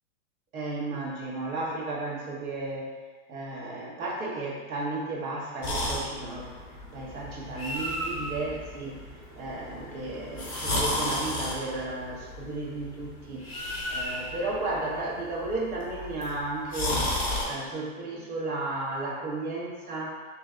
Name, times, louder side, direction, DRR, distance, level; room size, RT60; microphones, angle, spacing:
voice 1, 0.5-2.9 3.3-6.6 6.9-9.0 9.4-17.1 17.4-20.3, right 2 dB, 85° right, -3 dB, 1.3 m, -34 dB
sound 1, 5.6-17.4, left 1 dB, 5° right, 0.5 m, -33 dB
3.3 x 3.2 x 3.7 m, 1.4 s
supercardioid pair, 165°, 42 cm